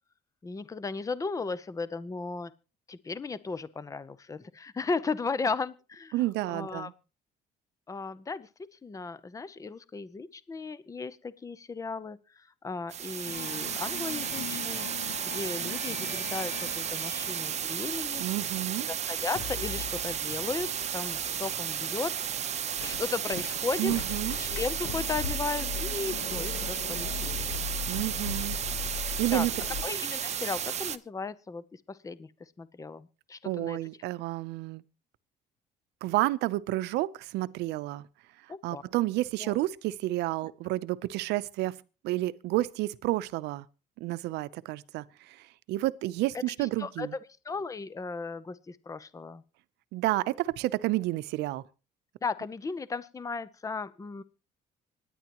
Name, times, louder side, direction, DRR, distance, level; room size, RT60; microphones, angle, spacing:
voice 1, 0.4-2.5 2.9-6.9 7.9-8.5 8.8-14.9 15.2-18.2 18.9-22.1 22.5-23.9 24.3-27.5 29.3-29.5 29.8-33.8 38.5-38.8 39.4-39.6 46.6-47.2 47.4-49.4 52.2-54.2, left 4 dB, 20° left, 0.7 m, -36 dB
voice 2, 6.1-6.9 18.2-18.9 23.8-24.4 27.9-28.6 29.2-29.5 33.4-34.8 36.0-38.1 38.6-41.8 42.0-43.7 44.0-47.2 49.9-51.6, right 17 dB, 85° right, 0.7 m, -30 dB
sound 1, 12.9-31.0, right 9 dB, 40° right, 0.7 m, -33 dB
sound 2, 13.3-19.0 19.4-29.8, left 8 dB, 60° left, 0.8 m, -41 dB
sound 3, 22.4-29.8, left 4 dB, 80° left, 1.4 m, -44 dB
25.0 x 10.0 x 3.0 m
cardioid pair, 110°, 17 cm